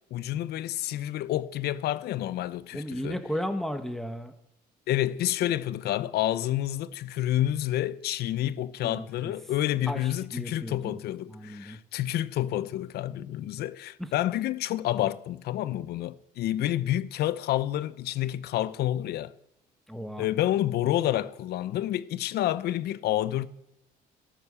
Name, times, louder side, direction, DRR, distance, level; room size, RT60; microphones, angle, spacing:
voice 1, 0.1-3.2 4.9-19.3 20.2-23.5, left 13 dB, 70° left, 0.9 m, -29 dB
voice 2, 2.7-4.3 8.8-9.4 9.8-11.0 11.3-11.8 14.0-14.1 19.9-20.3, equal, ahead, 1.7 m, -35 dB
13.5 x 13.0 x 6.9 m
cardioid pair, 110°, 17 cm